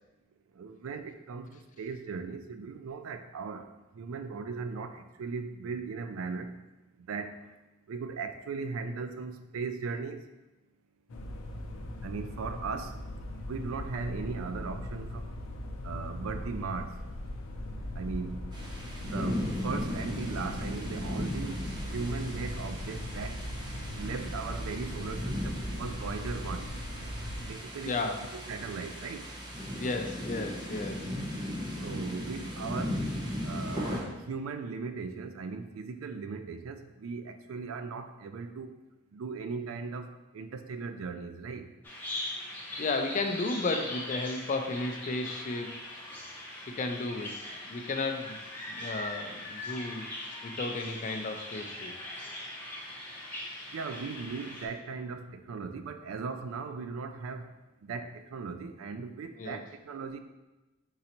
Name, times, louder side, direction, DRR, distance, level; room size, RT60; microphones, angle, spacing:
voice 1, 0.6-3.7 3.9-6.5 7.0-7.5 7.9-10.2 12.0-13.0 13.5-15.3 15.8-17.0 18.0-18.4 19.0-21.6 21.9-23.4 23.9-26.7 27.5-29.2 31.8-33.0 33.4-38.8 39.1-41.7 53.7-57.5 57.8-60.2, right 4 dB, 85° right, 8 dB, 0.4 m, -38 dB
sound 1, 11.1-27.5, left 1 dB, 85° left, 0.5 m, -39 dB
sound 2, 18.5-34.0, equal, 20° right, 0.7 m, -37 dB
voice 2, 27.8-28.2 29.8-31.1 42.8-45.8 46.8-47.3 47.7-48.4 48.7-50.1 50.4-51.9 59.4-59.6, left 3 dB, 40° left, 5 dB, 0.4 m, -33 dB
Bird vocalization bird call bird song, 41.8-54.7, left 1 dB, 10° left, 0.8 m, -40 dB
4.2 x 3.8 x 2.9 m, 1.1 s
head